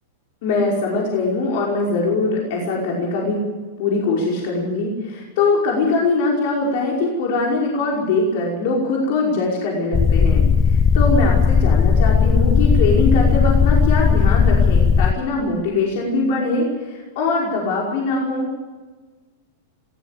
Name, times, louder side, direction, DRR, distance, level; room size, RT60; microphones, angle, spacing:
voice 1, 0.4-3.4 3.8-18.5, left 3 dB, 55° left, -2 dB, 5.4 m, -22 dB
sound 1, 9.9-15.1, left 6 dB, 20° left, 0.7 m, -16 dB
20.0 x 17.5 x 8.6 m, 1.3 s
figure-of-eight pair, 95°, 0 cm